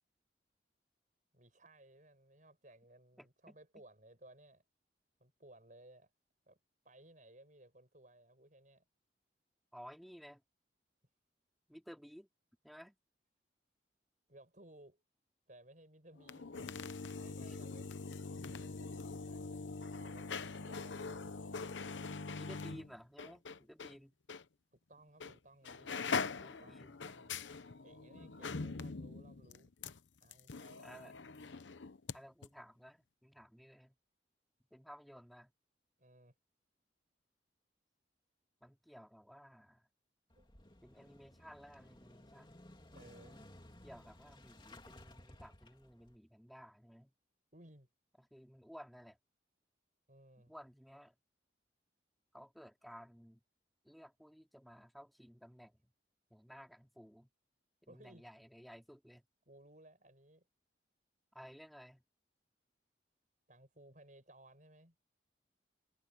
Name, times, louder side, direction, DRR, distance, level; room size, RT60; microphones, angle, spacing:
voice 1, 1.3-4.6 5.2-6.1 6.5-6.6 6.8-8.8 14.3-15.0 15.5-16.5 17.2-17.9 18.5-21.4 24.7-27.3 27.8-29.7 30.2-31.0 36.0-36.3 40.3-40.5 42.9-43.4 47.5-47.9 50.1-50.5 57.9-58.3 59.5-60.5 63.5-65.0, right 1 dB, 45° right, 7.9 m, -61 dB
voice 2, 3.2-3.5 9.7-10.4 11.7-12.3 12.6-13.0 17.4-17.6 22.4-24.2 26.4-26.9 30.8-31.1 32.1-33.9 34.7-35.5 38.6-39.8 40.8-42.6 43.8-47.1 48.2-49.2 50.5-51.1 52.3-53.4 53.8-55.9 56.3-57.3 57.8-59.2 61.3-62.0, equal, ahead, 2.8 m, -55 dB
sound 1, 16.2-24.0 24.3-24.4 25.2-25.4 25.6-32.2 32.4-32.5, left 4 dB, 85° left, 0.8 m, -43 dB
Motorcycle / Engine starting, 40.3-46.2, left 1 dB, 25° left, 2.9 m, -58 dB
head